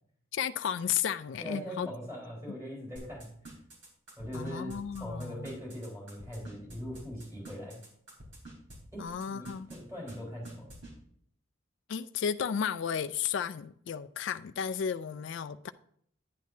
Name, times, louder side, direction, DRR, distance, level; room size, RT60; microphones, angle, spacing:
voice 1, 0.3-1.9 4.3-5.5 9.0-9.7 11.9-15.7, left 8 dB, 65° left, 0.3 m, -33 dB
voice 2, 1.4-3.3 4.2-7.8 8.9-10.7, equal, 15° right, 4.4 m, -41 dB
sound 1, 3.0-8.8 9.1-9.8 10.1-10.2 10.4-10.9, right 2 dB, 70° right, 3.6 m, -48 dB
10.5 x 9.3 x 2.7 m
head